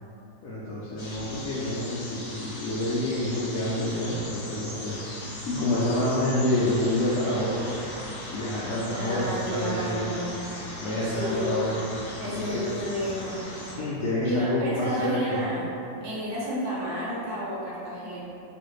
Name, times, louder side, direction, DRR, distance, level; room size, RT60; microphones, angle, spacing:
voice 1, 0.4-5.0 5.2-7.8 8.3-10.1 10.8-11.9 12.3-12.7 13.8-15.4, left 1 dB, 85° left, -9 dB, 0.7 m, -28 dB
sound 1, 1.0-13.8, left 1 dB, 65° left, 1.2 m, -38 dB
voice 2, 9.0-10.5 11.0-11.5 12.2-13.4 14.2-15.7 16.0-18.2, equal, 75° right, -7 dB, 1.4 m, -31 dB
3.1 x 2.5 x 3.1 m, 2.7 s
omnidirectional pair, 2.0 m